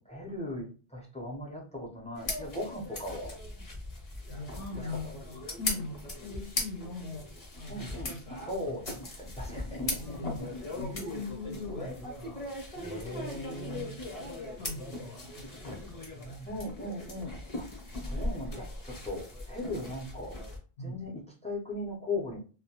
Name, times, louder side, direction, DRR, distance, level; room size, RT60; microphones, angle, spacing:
voice 1, 0.0-3.4 7.7-10.0 12.8-14.0 16.4-17.7 17.9-20.4 20.8-22.4, left 1 dB, 10° left, -2 dB, 0.3 m, -38 dB
sound 1, 2.1-20.6, left 2 dB, 40° left, 0.7 m, -39 dB
voice 2, 4.3-7.3 7.6-9.0 10.0-12.5 13.6-13.9 14.2-14.3 14.6-16.6 20.8-21.1, left 3 dB, 65° left, 0 dB, 0.8 m, -42 dB
2.1 x 2.1 x 2.8 m, 0.37 s
omnidirectional pair, 1.1 m